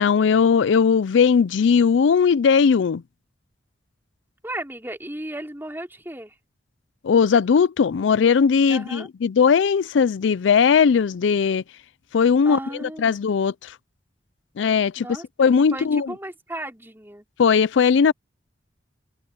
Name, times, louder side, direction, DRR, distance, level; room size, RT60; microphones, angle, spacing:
voice 1, 0.0-3.0 7.0-11.6 12.1-13.5 14.6-15.1 15.4-16.1 17.4-18.1, left 6 dB, 85° left, 0.4 m, -18 dB
voice 2, 4.4-6.4 8.7-9.1 12.5-13.2 15.0-17.2, right 1 dB, 10° right, 5.3 m, -35 dB
open air
head